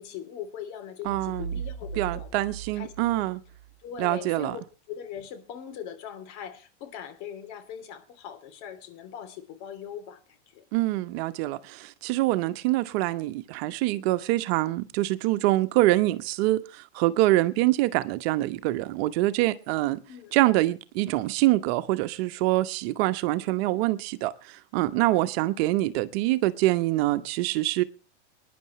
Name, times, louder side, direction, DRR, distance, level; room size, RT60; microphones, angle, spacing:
voice 1, 0.0-2.3 2.7-3.2 3.8-10.6 20.1-20.3, left 8 dB, 55° left, 3.2 m, -41 dB
voice 2, 1.0-1.5 2.0-3.4 4.0-4.6 10.7-20.0 20.3-27.8, right 17 dB, 55° right, 1.1 m, -25 dB
sound 1, 1.1-3.7, right 6 dB, 90° left, 5.1 m, -38 dB
23.0 x 10.5 x 3.1 m
hypercardioid pair, 115°, 36 cm